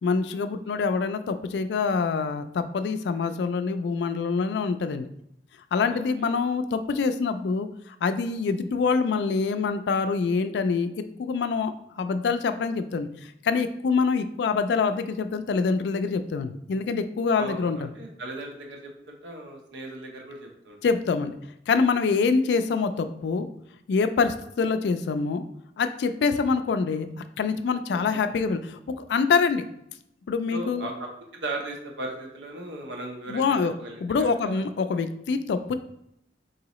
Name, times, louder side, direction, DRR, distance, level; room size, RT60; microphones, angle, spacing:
voice 1, 0.0-5.1 5.7-7.7 8.0-10.9 11.2-11.7 12.0-13.1 13.4-17.8 20.8-21.4 21.7-23.5 23.9-25.4 25.8-27.1 27.4-28.8 29.1-29.6 30.3-30.9 33.3-33.7 34.0-35.7, left 5 dB, 70° left, 10 dB, 0.3 m, -25 dB
voice 2, 5.9-6.3 17.3-20.8 26.4-26.5 27.9-28.4 30.5-34.6, right 2 dB, 80° right, 1 dB, 0.8 m, -37 dB
3.8 x 2.7 x 3.0 m, 0.78 s
head